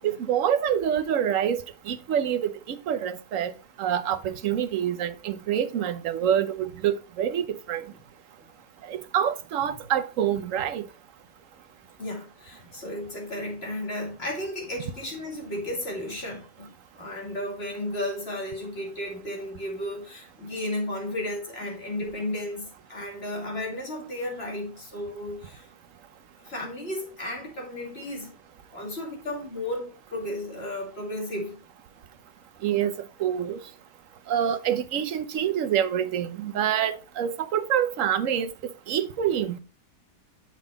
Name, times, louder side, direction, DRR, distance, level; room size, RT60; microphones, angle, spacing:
voice 1, 0.0-7.8 8.8-10.9 32.6-33.6 34.3-39.6, right 9 dB, 60° right, 1.0 m, -26 dB
voice 2, 12.0-25.7 26.4-28.3 28.7-31.6, left 1 dB, 35° left, 2.8 m, -34 dB
7.6 x 6.3 x 3.8 m
omnidirectional pair, 1.8 m